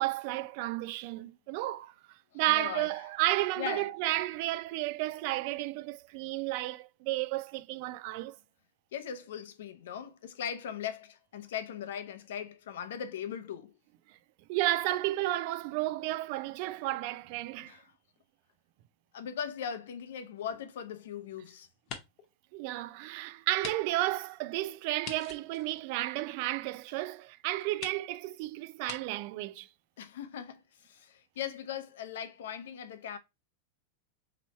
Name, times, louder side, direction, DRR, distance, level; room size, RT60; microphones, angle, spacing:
voice 1, 0.0-1.9 2.3-8.4 14.5-17.8 22.5-29.7, right 17 dB, 50° right, 0.3 m, -32 dB
voice 2, 2.3-2.9 3.6-3.9 8.9-13.8 17.6-17.9 19.1-21.7 30.0-33.2, left 8 dB, 85° left, 0.7 m, -39 dB
sound 1, 20.4-21.4 21.7-22.3 22.8-22.9 23.6-23.8 24.1-24.2 25.0-26.6 27.3-27.4 27.8-28.0 28.8-29.0, left 6 dB, 40° left, 0.9 m, -44 dB
3.1 x 3.0 x 4.2 m
supercardioid pair, 145°, 0 cm